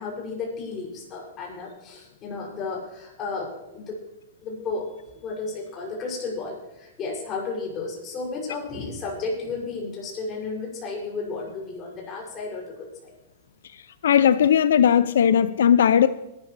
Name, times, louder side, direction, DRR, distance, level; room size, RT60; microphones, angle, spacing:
voice 1, 0.0-4.0 4.4-4.9 5.2-12.7 13.0-13.1, left 3 dB, 30° left, -2 dB, 6.8 m, -33 dB
voice 2, 13.6-16.1, left 8 dB, 85° left, 14 dB, 0.5 m, -18 dB
20.0 x 13.0 x 3.4 m, 0.96 s
hypercardioid pair, 140°, 0 cm